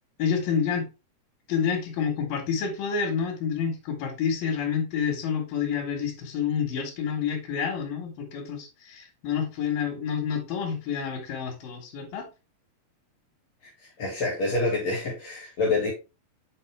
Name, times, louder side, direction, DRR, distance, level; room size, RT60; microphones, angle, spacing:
voice 1, 0.2-0.9 1.5-12.3, left 7 dB, 85° left, 3.2 m, -28 dB
voice 2, 14.0-15.9, left 2 dB, 55° left, 3.3 m, -26 dB
8.2 x 4.7 x 3.4 m
omnidirectional pair, 3.9 m